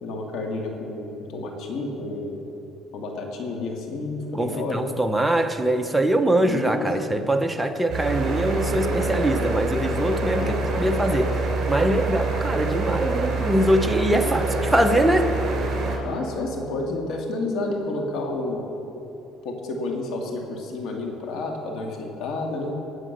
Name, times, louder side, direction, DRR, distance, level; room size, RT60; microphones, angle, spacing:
voice 1, 0.0-2.4 2.9-4.8 6.4-6.9 10.4-10.6 14.2-14.4 16.0-18.7 19.4-22.8, left 2 dB, 65° left, 1 dB, 2.1 m, -30 dB
voice 2, 4.3-11.4 11.7-15.4, right 1 dB, 5° right, 5 dB, 0.9 m, -23 dB
sound 1, 7.9-16.0, right 3 dB, 50° right, 3.6 m, -26 dB
19.0 x 7.8 x 6.7 m, 3.0 s
cardioid pair, 125°, 0 cm